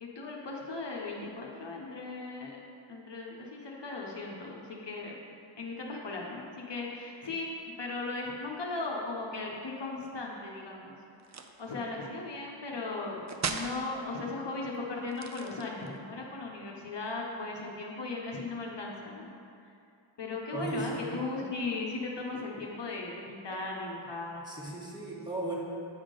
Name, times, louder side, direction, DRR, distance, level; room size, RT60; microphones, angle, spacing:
voice 1, 0.0-2.6 2.9-5.2 5.6-7.5 7.8-11.0 11.6-19.3 20.2-24.4, left 3 dB, 60° left, -2 dB, 0.9 m, -37 dB
sound 1, 11.2-11.7 13.3-13.8 15.1-16.0, right 5 dB, 35° right, 0.5 m, -36 dB
voice 2, 20.5-21.3 24.4-25.5, right 2 dB, 10° right, -5 dB, 1.5 m, -36 dB
8.0 x 3.6 x 5.1 m, 2.6 s
cardioid pair, 50°, 48 cm